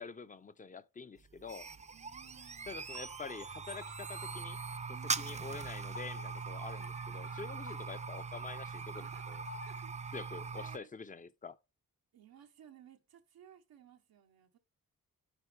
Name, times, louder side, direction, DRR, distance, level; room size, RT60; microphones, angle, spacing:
voice 1, 0.0-1.7 2.7-4.6 5.2-9.4 10.1-11.6, left 5 dB, 20° left, 0.7 m, -46 dB
sound 1, 1.2-10.8, right 5 dB, 20° right, 0.4 m, -41 dB
voice 2, 1.9-2.8 4.9-5.7 7.0-7.6 9.0-9.4 9.7-10.9 12.1-14.6, right 10 dB, 85° right, 1.1 m, -60 dB
sound 2, 2.9-9.8, left 3 dB, 50° left, 1.1 m, -54 dB
10.5 x 3.9 x 3.3 m
cardioid pair, 55°, 35 cm